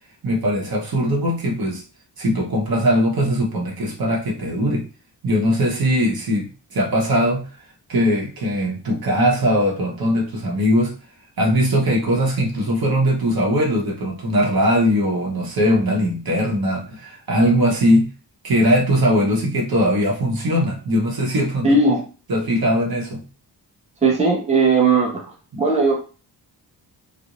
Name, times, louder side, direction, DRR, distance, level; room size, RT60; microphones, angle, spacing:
voice 1, 0.2-1.8 2.2-4.8 5.2-7.5 7.9-11.0 11.4-18.1 18.4-21.8 22.3-23.2 25.5-25.6, equal, 55° right, -2 dB, 0.9 m, -20 dB
voice 2, 21.6-22.0 24.0-25.2 25.6-26.0, right 3 dB, 15° right, -2 dB, 0.7 m, -17 dB
2.4 x 2.0 x 2.9 m, 0.36 s
wide cardioid pair, 125°, 42 cm